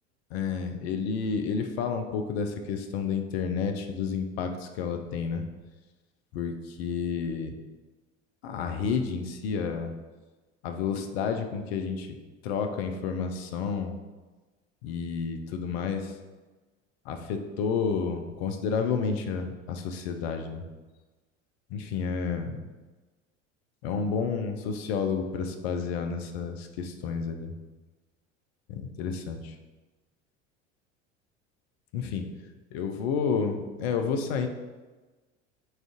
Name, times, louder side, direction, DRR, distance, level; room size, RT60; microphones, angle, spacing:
voice 1, 0.3-5.4 6.3-7.5 8.4-9.9 10.6-12.1 12.4-14.0 14.8-16.1 17.1-20.6 21.7-22.6 23.8-27.5 28.7-29.5 31.9-32.2 32.7-34.5, left 6 dB, 55° left, 6 dB, 0.5 m, -30 dB
2.4 x 2.4 x 3.6 m, 1.3 s
figure-of-eight pair, 70°, 37 cm